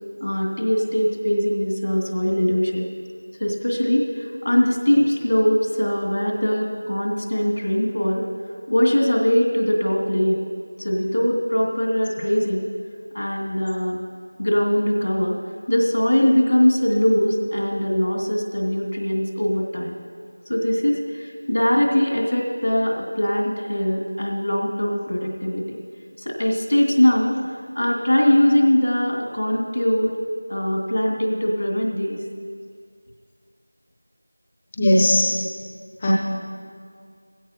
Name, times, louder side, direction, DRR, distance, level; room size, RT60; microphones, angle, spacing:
voice 1, 0.2-2.9 3.4-8.3 8.7-10.4 10.8-12.6 13.1-14.0 14.4-15.4 15.7-20.0 20.5-25.8 26.2-27.4 27.7-30.1 30.5-32.2, equal, 85° left, -1 dB, 2.6 m, -21 dB
voice 2, 34.8-35.4 36.0-36.1, left 1 dB, 10° left, -2 dB, 0.8 m, -17 dB
16.0 x 16.0 x 3.0 m, 2.1 s
figure-of-eight pair, 180°, 0 cm